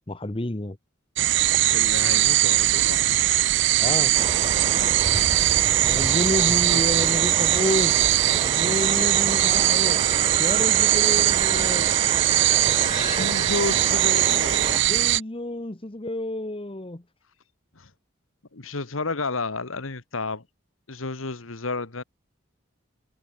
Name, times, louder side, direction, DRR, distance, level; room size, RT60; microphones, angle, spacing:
voice 1, 0.1-0.8 3.8-4.1 5.8-8.1 8.4-10.1 10.4-12.0 13.0-13.3 14.9-17.0, left 1 dB, 25° left, 1.1 m, -29 dB
sound 1, 1.2-15.2, right 15 dB, 60° right, 0.5 m, -21 dB
voice 2, 1.7-3.0 6.7-6.8 12.7-14.8 17.8-17.9 18.5-20.4 20.9-22.0, left 3 dB, 85° left, 1.6 m, -31 dB
sound 2, 4.1-14.8, right 3 dB, 25° right, 0.7 m, -31 dB
head